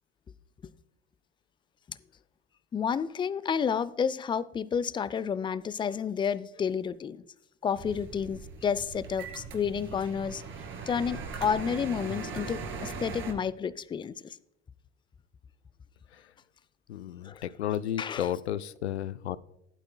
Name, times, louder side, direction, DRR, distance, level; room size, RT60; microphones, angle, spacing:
voice 1, 2.7-7.2 7.6-10.4 10.9-14.1 17.2-17.4 18.0-18.2, left 7 dB, 15° left, 0.4 m, -30 dB
sound 1, 7.8-13.3, right 4 dB, 40° right, 2.4 m, -39 dB
voice 2, 16.9-19.4, left 11 dB, 80° left, 0.5 m, -33 dB
15.0 x 9.1 x 2.3 m
hypercardioid pair, 75°, 32 cm